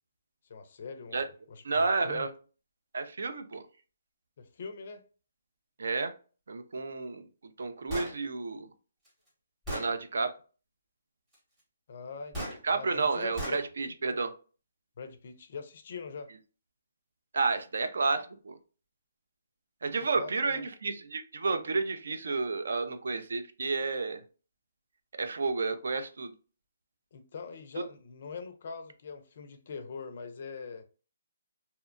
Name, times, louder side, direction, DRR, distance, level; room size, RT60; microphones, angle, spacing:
voice 1, 0.5-2.3 4.4-5.0 11.9-13.6 15.0-16.3 19.9-20.7 27.1-30.8, left 5 dB, 40° left, 0.4 m, -43 dB
voice 2, 1.6-2.3 2.9-3.6 5.8-6.1 6.5-7.2 7.6-8.7 9.7-10.3 12.6-14.3 17.3-18.6 19.8-24.2 25.2-26.3, right 4 dB, 70° right, 0.4 m, -31 dB
Gunshot gunfire, 7.9-8.2 9.1-9.2 9.7-9.9 12.3-12.6 13.4-13.6, equal, 10° right, 0.8 m, -35 dB
2.6 x 2.1 x 2.5 m
hypercardioid pair, 175°, 0 cm